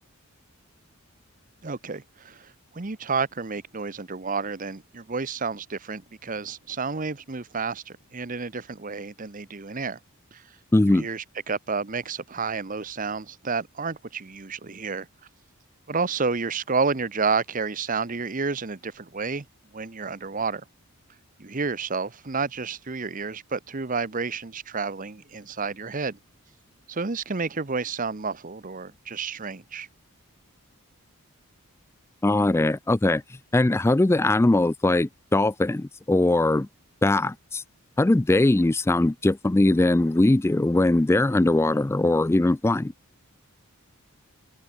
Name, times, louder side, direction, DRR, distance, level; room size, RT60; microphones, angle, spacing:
voice 1, 1.6-10.0 10.3-10.4 10.9-15.1 15.9-19.5 19.7-20.6 21.4-26.2 26.9-29.9, right 4 dB, 35° right, 0.9 m, -30 dB
voice 2, 10.7-11.1 32.2-33.2 33.5-36.7 37.0-37.6 38.0-42.9, left 2 dB, 10° left, 0.3 m, -21 dB
head